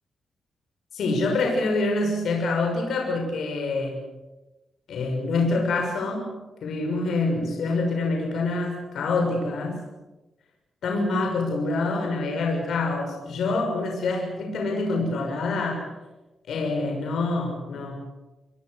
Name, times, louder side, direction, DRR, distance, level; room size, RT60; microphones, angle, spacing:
voice 1, 0.9-4.0 4.9-6.3 6.6-9.8 10.8-15.9 16.5-18.0, left 3 dB, 80° left, 2 dB, 6.3 m, -26 dB
28.5 x 22.5 x 6.7 m, 1.1 s
wide cardioid pair, 130°, 0 cm